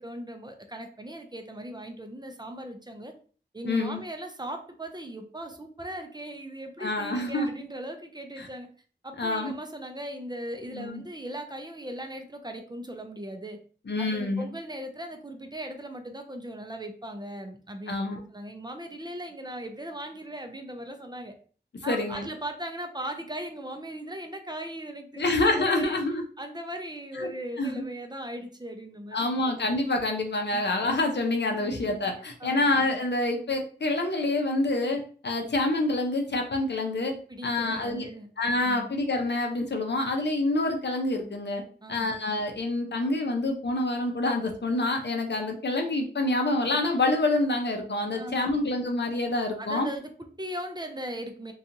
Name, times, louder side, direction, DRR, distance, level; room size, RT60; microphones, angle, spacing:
voice 1, 0.0-3.1 3.5-8.7 9.0-13.6 14.0-21.3 21.8-26.0 26.4-29.5 30.5-30.7 31.6-32.0 32.4-32.7 37.3-38.3 38.6-38.9 41.8-42.1 48.1-48.7 49.6-51.5, right 1 dB, 25° right, 5 dB, 0.4 m, -38 dB
voice 2, 3.7-4.0 6.8-7.5 8.4-8.5 9.2-9.5 10.7-11.0 13.9-14.5 17.9-18.2 21.9-22.3 25.2-26.2 27.2-27.3 27.6-27.8 29.1-37.1 37.4-38.1 38.4-41.6 41.9-49.9, left 2 dB, 75° left, 3 dB, 0.6 m, -27 dB
2.8 x 2.3 x 2.5 m, 0.42 s
wide cardioid pair, 55°, 18 cm